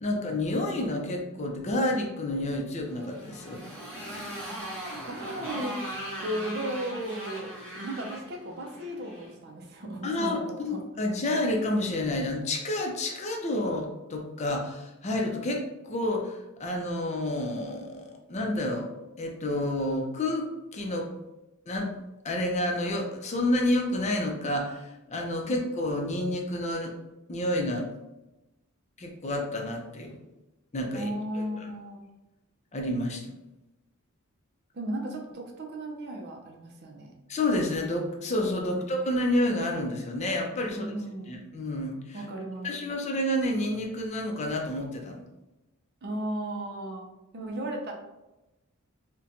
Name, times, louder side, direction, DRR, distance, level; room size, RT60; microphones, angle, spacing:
voice 1, 0.0-3.6 10.0-18.9 19.2-21.1 21.7-22.0 22.2-26.9 27.3-27.9 29.0-30.2 30.7-31.1 31.3-31.7 32.7-33.2 37.3-40.9 41.3-42.2 42.6-45.2, left 1 dB, 35° left, 1 dB, 0.5 m, -29 dB
Motorcycle, 2.9-9.3, equal, 5° left, 0.9 m, -39 dB
voice 2, 5.0-5.8 6.2-10.8 25.5-25.6 30.9-32.0 34.7-37.1 38.6-38.9 40.7-41.4 42.1-42.7 46.0-47.0 47.3-47.9, right 1 dB, 50° right, 1 dB, 0.5 m, -35 dB
4.2 x 2.2 x 2.5 m, 1.0 s
head